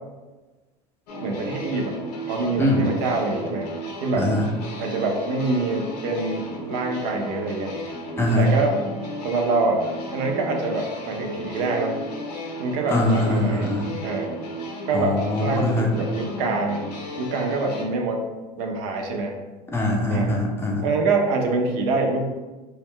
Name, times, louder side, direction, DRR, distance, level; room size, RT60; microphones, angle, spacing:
sound 1, 1.1-17.8, equal, 75° left, 0.6 m, -34 dB
voice 1, 1.2-2.0 2.3-3.7 4.0-4.3 4.8-7.7 8.4-8.8 9.2-9.9 10.1-12.0 12.6-13.7 14.0-14.3 14.9-16.9 17.2-18.2 18.6-19.4 20.1-20.3 20.8-22.3, right 3 dB, 60° right, 2 dB, 0.6 m, -25 dB
voice 2, 2.6-2.9 4.2-4.5 8.2-8.5 12.9-14.0 14.9-16.0 19.7-20.9, left 1 dB, 10° left, 0 dB, 0.5 m, -22 dB
2.2 x 2.0 x 3.6 m, 1.2 s
hypercardioid pair, 85°, 21 cm